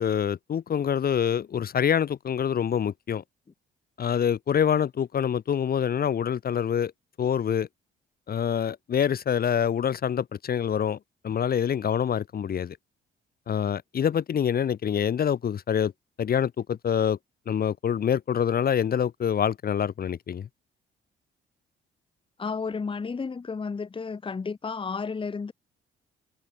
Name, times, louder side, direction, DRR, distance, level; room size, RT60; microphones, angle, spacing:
voice 1, 0.0-3.2 4.0-6.9 7.2-7.7 8.3-11.0 11.2-12.8 13.5-15.9 16.2-17.2 17.5-20.5, left 8 dB, 50° left, 1.2 m, -26 dB
voice 2, 22.4-25.5, left 5 dB, 25° left, 1.1 m, -32 dB
cardioid pair, 90°, 20 cm